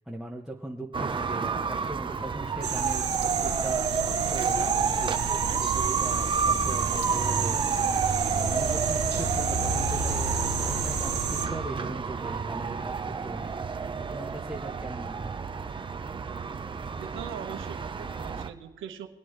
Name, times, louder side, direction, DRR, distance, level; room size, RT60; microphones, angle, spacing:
voice 1, 0.1-5.2 5.6-15.4, right 1 dB, ahead, -2 dB, 1.0 m, -40 dB
sound 1, 0.9-18.5, right 5 dB, 25° right, 0.6 m, -30 dB
sound 2, 2.6-11.5, right 7 dB, 55° right, 1.7 m, -31 dB
sound 3, 8.0-12.3, left 2 dB, 40° left, 2.2 m, -39 dB
voice 2, 17.0-19.1, right 9 dB, 75° right, 7 dB, 1.1 m, -41 dB
23.0 x 8.6 x 3.2 m, 1.1 s
cardioid pair, 90°, 20 cm